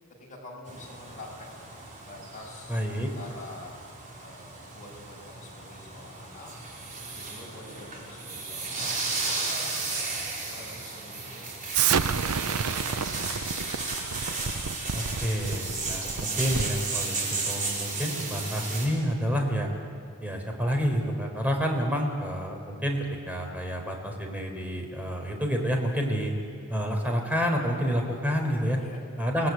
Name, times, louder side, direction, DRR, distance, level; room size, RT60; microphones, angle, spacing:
voice 1, 0.2-1.6 2.0-3.8 4.2-6.5 7.1-9.9 10.5-13.7 28.8-29.0, left 1 dB, 35° left, -1 dB, 7.2 m, -47 dB
sound 1, 0.7-18.9, right 3 dB, 40° right, 5.5 m, -34 dB
voice 2, 2.7-3.1 14.9-19.7 20.2-26.3 26.7-28.8 29.2-29.5, equal, 5° right, 2 dB, 4.2 m, -29 dB
Explosion, 11.7-16.8, right 7 dB, 75° right, 0.7 m, -30 dB
28.0 x 19.0 x 9.5 m, 2.4 s
head